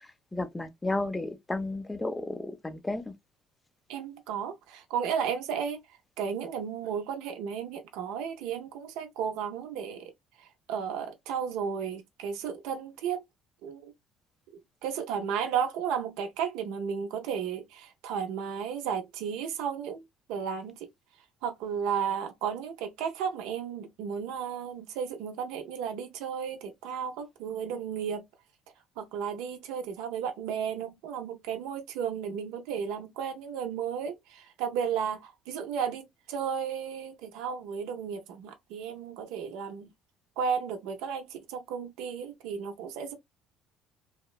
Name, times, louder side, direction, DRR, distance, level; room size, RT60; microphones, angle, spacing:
voice 1, 0.3-3.0, left 2 dB, 10° left, 0.3 m, -32 dB
voice 2, 3.9-5.8 6.2-10.1 10.7-13.2 13.6-13.9 14.5-20.0 20.3-20.9 21.4-28.2 29.0-39.9 40.4-43.1, right 7 dB, 85° right, 0.5 m, -33 dB
2.8 x 2.1 x 2.2 m
cardioid pair, 165°, 0 cm